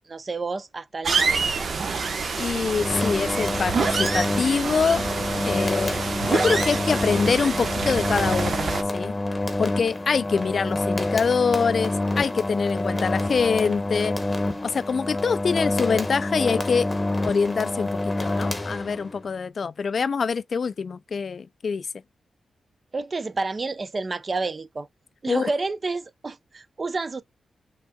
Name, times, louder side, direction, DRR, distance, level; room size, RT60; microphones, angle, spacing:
voice 1, 0.0-1.7 22.9-24.9 25.2-27.2, right 3 dB, 40° right, 0.6 m, -30 dB
sound 1, 1.0-8.8, right 4 dB, 55° right, 0.9 m, -27 dB
voice 2, 2.4-5.0 5.4-9.1 9.6-14.1 14.6-16.9 17.2-21.9 25.3-25.5, left 5 dB, 55° left, 0.3 m, -25 dB
sound 2, 2.7-19.2, left 2 dB, 20° left, 1.1 m, -27 dB
5.4 x 3.6 x 2.2 m
cardioid pair, 95°, 0 cm